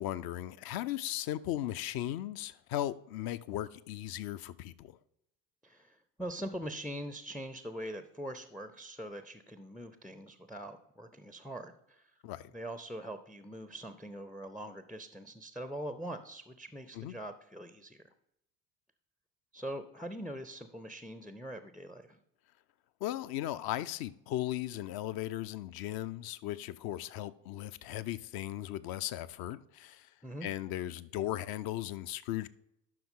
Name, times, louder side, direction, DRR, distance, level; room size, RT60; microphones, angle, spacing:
voice 1, 0.0-5.0 12.2-12.5 16.9-17.1 23.0-30.1 30.4-32.5, left 13 dB, 50° left, 0.6 m, -37 dB
voice 2, 5.6-12.1 12.5-18.0 19.5-22.2 30.2-30.5, right 1 dB, ahead, 0.4 m, -43 dB
12.0 x 5.7 x 3.7 m
hypercardioid pair, 60°, 47 cm